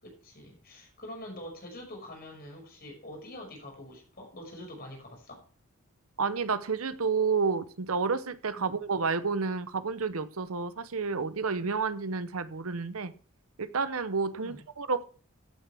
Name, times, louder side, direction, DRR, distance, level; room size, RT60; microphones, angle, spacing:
voice 1, 0.0-5.4 8.6-8.7 14.4-14.6, left 1 dB, 45° left, 5.7 m, -45 dB
voice 2, 6.2-13.1 13.6-15.0, right 5 dB, 70° right, 0.8 m, -30 dB
15.0 x 9.2 x 3.5 m
head